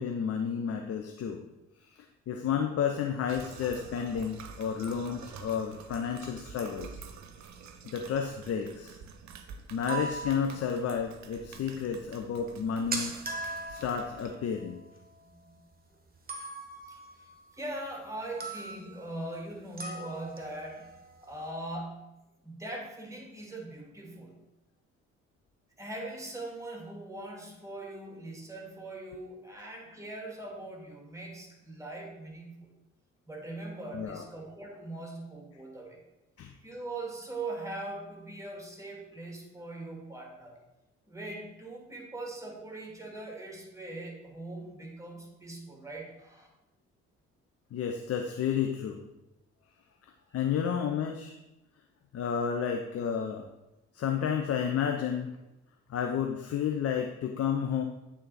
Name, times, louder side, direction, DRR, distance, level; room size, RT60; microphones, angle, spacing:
voice 1, 0.0-1.4 1.9-7.0 7.9-9.0 9.7-13.2 13.7-14.8 33.9-34.3 36.4-36.5 47.7-49.0 50.3-51.4 52.1-53.5 53.9-55.3 55.9-57.8, left 7 dB, 45° left, 4 dB, 0.7 m, -31 dB
sound 1, 3.3-14.3, right 6 dB, 55° right, 0.7 m, -48 dB
sound 2, 9.7-11.2 11.4-11.5 11.8-11.9 12.1-12.2 12.4-15.7 16.3-18.1 18.4-19.1 19.8-21.5, right 3 dB, 25° right, 1.1 m, -40 dB
voice 2, 16.9-24.4 25.8-32.7 33.3-36.0 36.6-40.6 41.1-46.5, right 2 dB, 10° right, 0 dB, 1.9 m, -41 dB
8.3 x 3.7 x 4.1 m, 0.96 s
hypercardioid pair, 45°, 35 cm